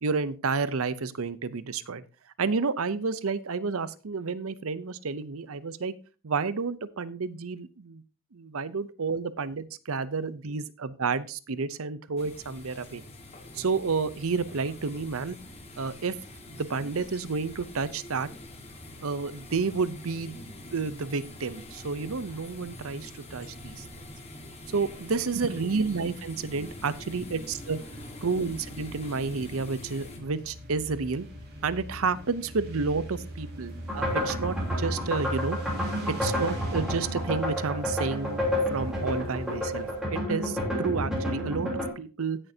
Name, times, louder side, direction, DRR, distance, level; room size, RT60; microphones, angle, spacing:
voice 1, 0.0-2.0 2.4-6.0 6.2-8.0 8.3-13.0 13.5-15.4 15.8-16.2 16.5-18.3 19.0-20.4 20.7-23.9 24.7-27.8 28.2-31.3 31.6-35.6 36.1-38.4 38.7-42.4, right 4 dB, 70° right, 16 dB, 0.7 m, -30 dB
sound 1, 12.2-30.2, left 1 dB, 30° left, 1.6 m, -45 dB
sound 2, 26.6-40.0, right 1 dB, 45° right, 4.1 m, -41 dB
sound 3, 33.9-41.9, equal, 5° right, 3.2 m, -30 dB
16.5 x 6.6 x 2.8 m, 0.33 s
head